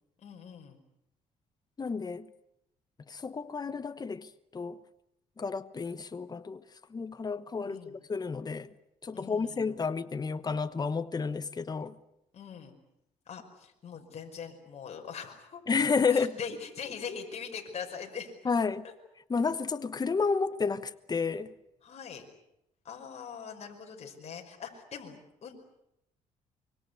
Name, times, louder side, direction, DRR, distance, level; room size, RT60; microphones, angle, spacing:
voice 1, 0.2-0.8 7.6-7.9 9.1-9.7 12.3-12.7 13.3-15.6 16.1-18.3 21.8-22.2 22.8-25.6, left 6 dB, 50° left, 5.3 m, -42 dB
voice 2, 1.8-2.3 3.1-4.8 5.4-6.6 6.9-8.7 9.0-11.9 15.7-16.4 18.4-18.9 19.3-21.5, left 5 dB, 30° left, 1.1 m, -31 dB
24.5 x 23.5 x 8.3 m
cardioid pair, 90°, 14 cm